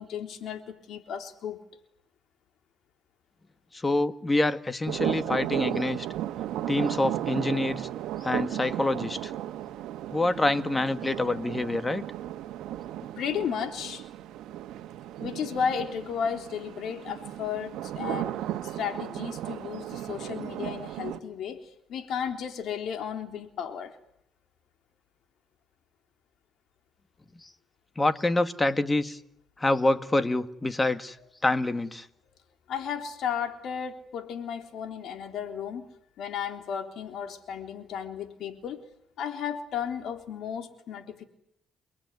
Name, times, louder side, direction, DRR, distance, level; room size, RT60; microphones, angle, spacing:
voice 1, 0.0-1.6 13.2-14.1 15.2-24.0 32.7-38.9 39.2-41.2, left 7 dB, 75° left, 7 dB, 3.6 m, -34 dB
voice 2, 3.7-6.1 6.7-7.9 8.2-9.3 10.1-12.0 27.4-27.5 28.0-29.2 29.6-31.2 31.4-32.1, left 2 dB, 20° left, 11 dB, 1.8 m, -26 dB
sound 1, 4.9-21.2, right 12 dB, 90° right, 1.4 m, -35 dB
30.0 x 19.5 x 9.6 m, 0.74 s
cardioid pair, 90°, 0 cm